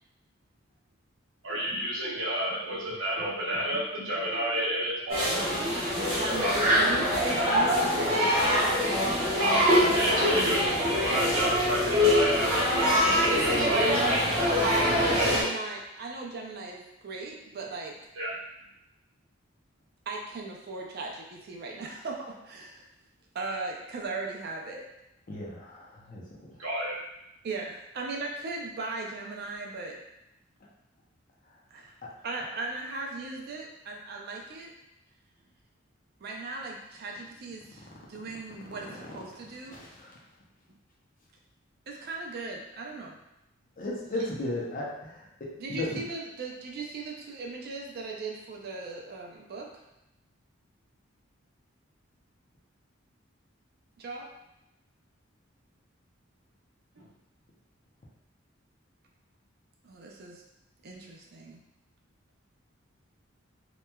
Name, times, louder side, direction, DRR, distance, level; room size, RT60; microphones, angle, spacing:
voice 1, 1.4-5.4 6.1-6.5 9.4-9.6 9.9-10.6 11.0-14.1 14.7-14.9 15.1-15.3 18.2-18.3 26.6-27.0 57.0-57.1, equal, 75° right, -5 dB, 0.8 m, -30 dB
sound 1, 5.1-15.4, equal, 30° right, 0.9 m, -24 dB
voice 2, 6.3-8.7 11.2-11.3 13.5-14.2 14.6-17.9 20.1-22.9 23.3-24.9 27.4-30.0 31.7-31.9 32.2-34.7 36.2-39.8 41.9-43.2 45.6-49.7 54.0-54.3 59.8-60.4 60.8-61.6, right 3 dB, 50° right, 0 dB, 0.4 m, -37 dB
voice 3, 25.3-26.6 31.5-31.6 38.8-39.0 39.6-40.2 43.8-46.0, left 1 dB, 45° left, -4 dB, 0.6 m, -36 dB
2.9 x 2.2 x 2.2 m, 0.87 s
head